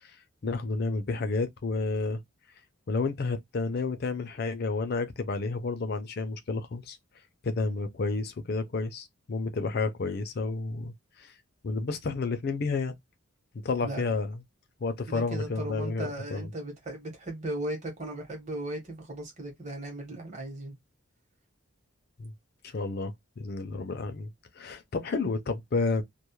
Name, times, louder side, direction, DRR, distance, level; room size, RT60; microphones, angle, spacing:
voice 1, 0.4-2.2 2.9-7.0 7.4-11.3 11.6-13.0 13.6-14.4 14.8-16.5 22.2-22.3 22.6-24.3 24.6-26.0, left 3 dB, 45° left, 0.4 m, -31 dB
voice 2, 13.8-14.2 15.1-20.7, right 1 dB, 35° right, 0.9 m, -37 dB
2.3 x 2.0 x 2.9 m
head